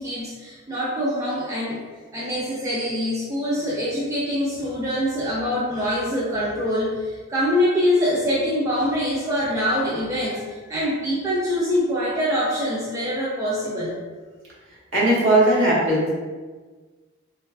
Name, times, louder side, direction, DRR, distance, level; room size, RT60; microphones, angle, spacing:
voice 1, 0.0-1.8 2.1-13.9, equal, 15° right, -8 dB, 0.4 m, -24 dB
voice 2, 14.9-16.1, right 1 dB, 60° right, -7 dB, 1.0 m, -18 dB
3.1 x 2.3 x 2.3 m, 1.4 s
head